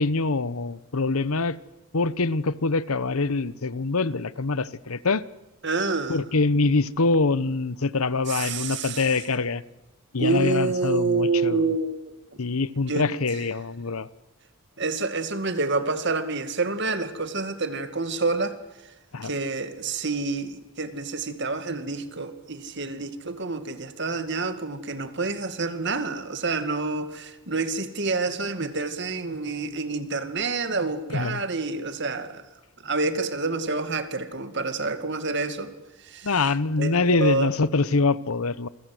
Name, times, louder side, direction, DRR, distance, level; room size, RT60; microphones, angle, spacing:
voice 1, 0.0-1.6 1.9-5.3 6.1-9.6 10.1-11.6 12.4-14.1 19.1-19.3 31.1-31.4 36.2-38.7, left 3 dB, 80° left, 0.9 m, -24 dB
voice 2, 5.6-6.2 8.3-9.1 10.2-12.4 12.9-13.1 14.8-18.6 19.2-32.4 32.8-35.7 36.0-36.4 36.8-37.5, right 3 dB, 55° right, 2.2 m, -28 dB
28.5 x 23.0 x 7.8 m
head